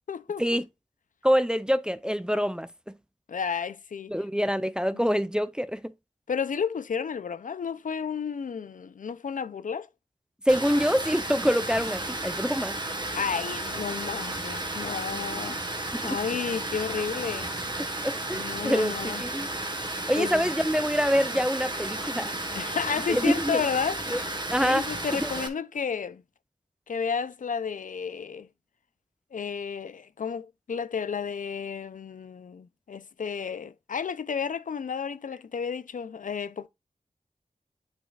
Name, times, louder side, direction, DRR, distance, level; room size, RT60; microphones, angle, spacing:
voice 1, 0.1-0.6 3.3-4.1 4.9-5.1 6.3-9.9 13.1-15.6 16.0-17.5 18.3-19.2 20.2-20.5 22.5-24.0 24.6-26.2 26.9-28.5 29.3-36.7, left 6 dB, 80° left, 0.5 m, -32 dB
voice 2, 1.2-2.7 4.1-5.9 10.5-12.8 15.9-16.2 18.0-18.9 19.2-19.5 20.1-22.3 23.1-23.6 24.1-24.2 24.5-24.8 25.2-25.3, equal, 5° right, 0.4 m, -25 dB
Water, 10.5-25.5, right 2 dB, 35° right, 1.2 m, -33 dB
8.6 x 6.0 x 2.4 m
wide cardioid pair, 85°, 13 cm